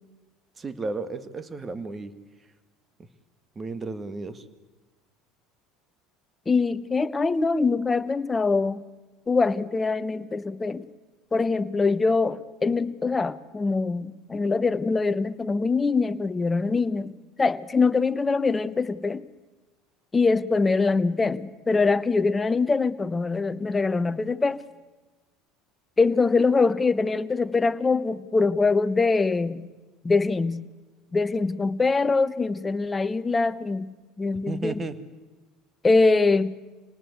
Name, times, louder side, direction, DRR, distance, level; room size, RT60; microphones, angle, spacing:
voice 1, 0.6-2.1 3.6-4.4 34.5-35.0, right 3 dB, 25° right, 1.9 m, -33 dB
voice 2, 6.5-8.8 9.3-10.8 11.3-17.1 17.4-19.2 20.1-24.6 26.0-29.7 30.0-30.6 31.1-34.8 35.8-36.5, left 4 dB, 20° left, 1.0 m, -23 dB
26.5 x 19.0 x 8.2 m
hypercardioid pair, 75°, 0 cm